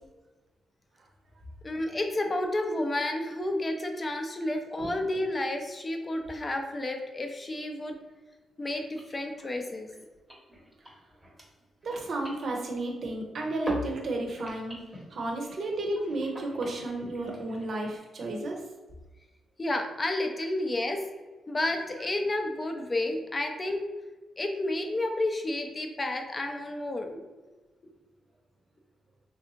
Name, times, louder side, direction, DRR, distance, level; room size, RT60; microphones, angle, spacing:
voice 1, 1.6-8.0 8.6-9.9 19.6-21.0 21.5-23.9 24.4-27.3, left 1 dB, 25° left, 4 dB, 0.5 m, -31 dB
sound 1, 8.0-8.1 8.3-8.4 8.6-13.3 13.6-18.0, left 1 dB, 5° right, 0.9 m, -44 dB
voice 2, 11.8-14.8 15.1-18.6, right 2 dB, 55° right, 1 dB, 0.7 m, -32 dB
3.3 x 2.6 x 2.8 m, 1.2 s
cardioid pair, 100°, 0 cm